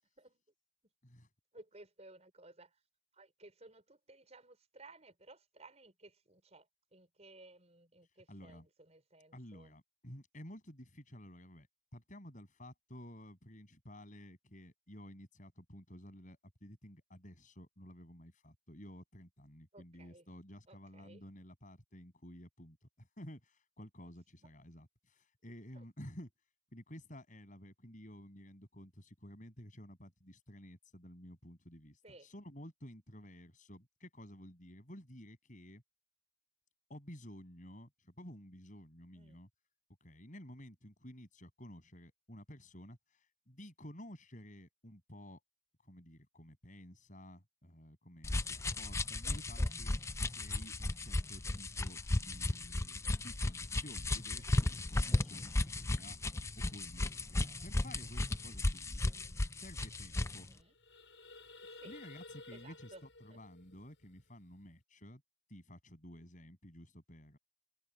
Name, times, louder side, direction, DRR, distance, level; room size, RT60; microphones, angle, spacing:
voice 1, 1.5-2.8 3.1-9.7 19.7-20.3 20.7-21.2 25.7-25.9 32.0-32.3 39.1-39.4 49.2-49.7 60.3-60.7 61.8-61.9 62.5-63.0 63.3-63.4, right 2 dB, 35° right, 5.5 m, -58 dB
voice 2, 8.3-8.7 9.3-11.7 11.9-26.3 26.7-35.8 36.9-39.5 40.0-45.4 45.8-52.0 52.2-56.2 56.6-59.0 59.5-60.5 61.8-65.2 65.5-67.4, equal, 40° left, 7.7 m, -53 dB
sound 1, 48.2-60.4, left 2 dB, 15° left, 0.5 m, -35 dB
sound 2, 60.4-64.7, left 3 dB, 75° left, 7.0 m, -55 dB
head